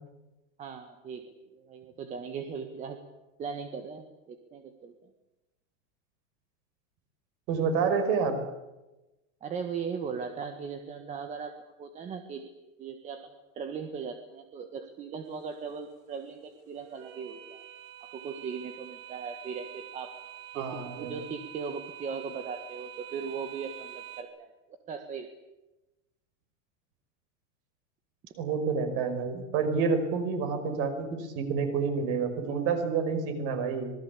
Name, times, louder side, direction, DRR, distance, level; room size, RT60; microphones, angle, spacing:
voice 1, 0.6-1.2 1.5-3.0 3.4-4.9 9.4-12.5 12.8-17.6 18.1-20.2 20.5-25.3, right 6 dB, 20° right, 6 dB, 1.6 m, -38 dB
voice 2, 7.5-8.3 20.6-21.1 28.3-33.9, right 5 dB, 40° right, 8 dB, 5.4 m, -28 dB
sound 1, 15.3-24.2, right 12 dB, 85° right, 4.9 m, -47 dB
26.5 x 21.0 x 8.5 m, 1.0 s
supercardioid pair, 175°, 38 cm